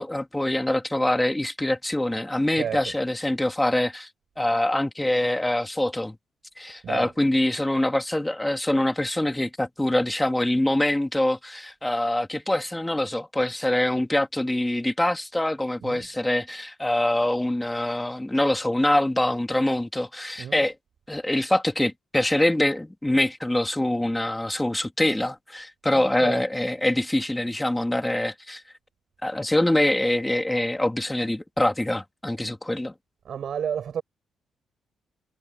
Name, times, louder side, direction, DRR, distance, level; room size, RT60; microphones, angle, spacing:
voice 1, 0.0-4.1 4.4-6.2 6.6-20.7 21.1-28.6 29.2-32.9, left 1 dB, 5° left, 2.7 m, -24 dB
voice 2, 2.5-2.9 6.8-7.1 15.8-16.1 20.4-20.7 25.9-26.4 33.3-34.0, right 8 dB, 50° right, 7.3 m, -32 dB
cardioid pair, 150°, 0 cm